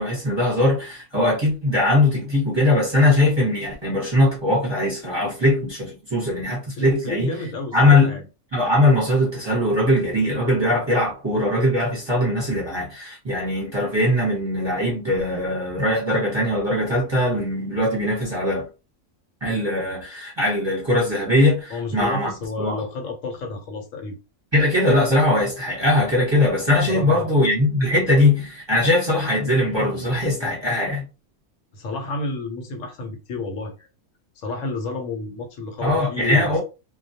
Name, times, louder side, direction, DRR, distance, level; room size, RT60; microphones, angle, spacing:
voice 1, 0.0-7.3 7.7-8.2 8.5-18.7 19.4-22.3 22.6-22.8 24.5-31.0 35.8-36.6, left 1 dB, 25° right, 0.8 m, -20 dB
voice 2, 6.8-8.3 21.7-24.2 26.9-27.3 31.7-33.9 34.4-36.6, left 3 dB, 75° left, 1.0 m, -31 dB
2.2 x 2.2 x 2.7 m
omnidirectional pair, 1.4 m